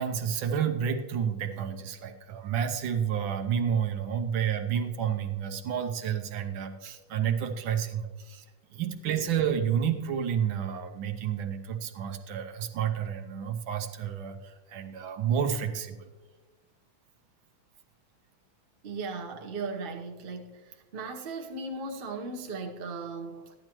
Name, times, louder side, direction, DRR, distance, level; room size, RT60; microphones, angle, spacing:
voice 1, 0.0-8.4 8.7-16.1, right 8 dB, 75° right, 1.5 m, -30 dB
voice 2, 18.8-23.5, right 3 dB, 40° right, 0.9 m, -37 dB
13.5 x 11.0 x 3.0 m
omnidirectional pair, 2.3 m